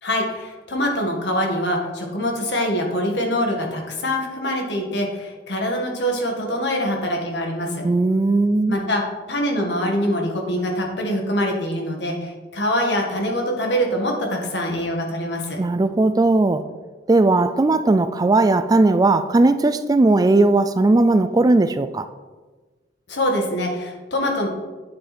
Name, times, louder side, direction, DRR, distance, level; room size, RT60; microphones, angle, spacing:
voice 1, 0.0-7.9 8.7-9.0 9.3-15.6 23.1-24.5, equal, 70° left, 1 dB, 1.9 m, -24 dB
voice 2, 7.8-8.8 15.6-16.7 17.1-22.1, right 2 dB, 20° right, 12 dB, 0.3 m, -17 dB
9.1 x 7.8 x 4.3 m, 1.3 s
head